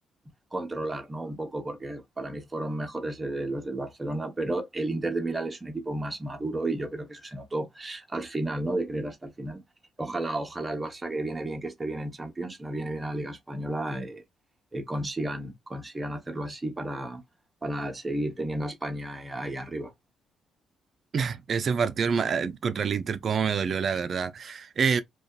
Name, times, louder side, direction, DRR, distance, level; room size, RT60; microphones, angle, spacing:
voice 1, 0.5-9.6 10.0-14.2 14.7-17.2 17.6-19.9, right 2 dB, 20° right, 0.7 m, -32 dB
voice 2, 21.1-25.0, right 6 dB, 50° right, 0.3 m, -27 dB
2.6 x 2.2 x 2.3 m
cardioid pair, 90°, 0 cm